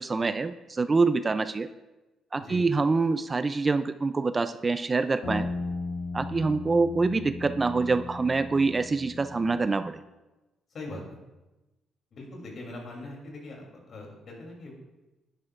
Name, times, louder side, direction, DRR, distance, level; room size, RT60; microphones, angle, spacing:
voice 1, 0.0-1.7 2.3-5.5 6.1-10.0, right 3 dB, 30° right, 11 dB, 0.4 m, -25 dB
voice 2, 2.4-2.7 10.7-11.2 12.1-14.9, left 2 dB, 55° left, 0 dB, 3.0 m, -41 dB
sound 1, 5.2-9.9, left 3 dB, 90° left, 2.5 m, -36 dB
11.0 x 10.0 x 2.5 m, 1.1 s
cardioid pair, 90°, 0 cm